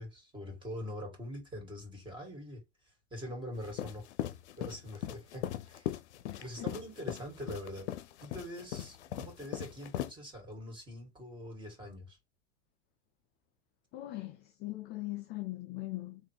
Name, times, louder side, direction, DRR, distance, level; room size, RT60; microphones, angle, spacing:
voice 1, 0.0-2.6 3.1-4.0 4.6-6.0 6.4-7.9 8.2-12.2, equal, 15° right, 2.4 m, -43 dB
sound 1, 3.6-10.1, left 12 dB, 75° left, 0.6 m, -39 dB
voice 2, 6.3-6.7 13.9-16.2, left 18 dB, 30° left, 0.4 m, -40 dB
3.6 x 2.6 x 3.3 m
hypercardioid pair, 110°, 35 cm